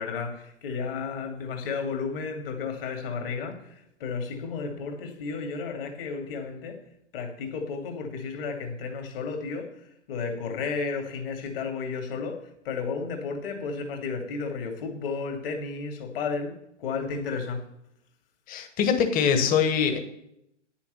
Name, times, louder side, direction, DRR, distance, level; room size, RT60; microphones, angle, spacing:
voice 1, 0.0-6.8 7.1-17.7, left 5 dB, 50° left, 2.6 m, -33 dB
voice 2, 18.5-20.0, left 7 dB, 25° left, 1.4 m, -23 dB
9.9 x 7.1 x 6.9 m
figure-of-eight pair, 115°, 36 cm